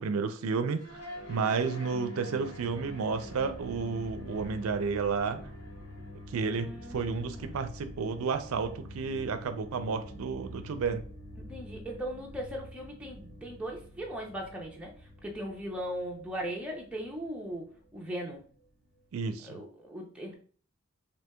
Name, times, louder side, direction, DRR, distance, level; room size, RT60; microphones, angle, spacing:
voice 1, 0.0-5.4 6.3-11.0 19.1-19.6, right 5 dB, 80° right, 9 dB, 0.4 m, -32 dB
sound 1, 0.7-19.1, left 1 dB, 80° left, 1.7 m, -46 dB
voice 2, 6.4-7.6 11.5-14.9 15.2-18.4 19.4-20.3, equal, 5° right, -1 dB, 0.5 m, -39 dB
4.3 x 2.7 x 2.2 m, 0.44 s
head